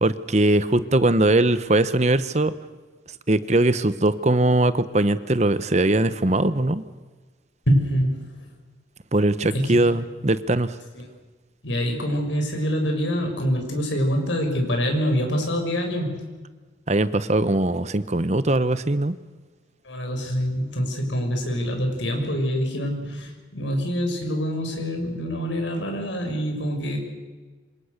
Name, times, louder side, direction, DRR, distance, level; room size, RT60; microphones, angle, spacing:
voice 1, 0.0-2.5 3.3-6.8 9.1-10.7 16.9-19.1, right 2 dB, 35° right, 13 dB, 1.0 m, -21 dB
voice 2, 7.7-8.3 9.4-9.9 10.9-11.0 11.6-16.2 19.8-27.0, equal, 85° left, 3 dB, 6.6 m, -25 dB
27.0 x 27.0 x 6.7 m, 1.3 s
head